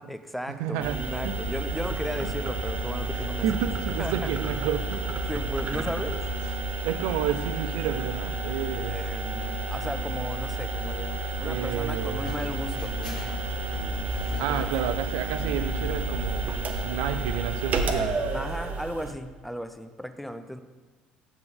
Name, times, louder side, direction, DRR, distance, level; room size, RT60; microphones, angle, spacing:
voice 1, 0.0-3.5 4.0-4.3 5.3-6.2 8.9-13.2 14.3-14.6 18.3-20.6, equal, ahead, 10 dB, 0.6 m, -35 dB
voice 2, 0.6-1.0 1.2-1.3 3.1-5.0 6.5-6.6 6.8-9.0 11.4-12.3 14.4-18.4, right 9 dB, 60° right, 9 dB, 0.5 m, -30 dB
sound 1, 0.8-19.1, right 2 dB, 40° right, 0.9 m, -31 dB
sound 2, 12.2-18.0, left 1 dB, 80° left, 0.9 m, -43 dB
9.1 x 7.5 x 3.7 m, 1.3 s
figure-of-eight pair, 55°, 4 cm